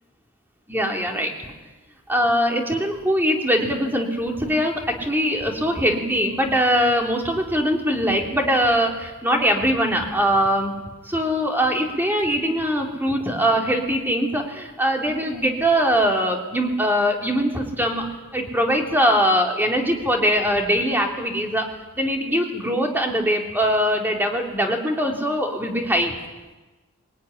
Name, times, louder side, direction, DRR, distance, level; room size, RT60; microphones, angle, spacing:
voice 1, 0.7-1.5 2.1-10.7 11.0-21.7 21.9-26.2, equal, 10° right, 1 dB, 3.2 m, -22 dB
23.0 x 17.5 x 10.0 m, 1.2 s
head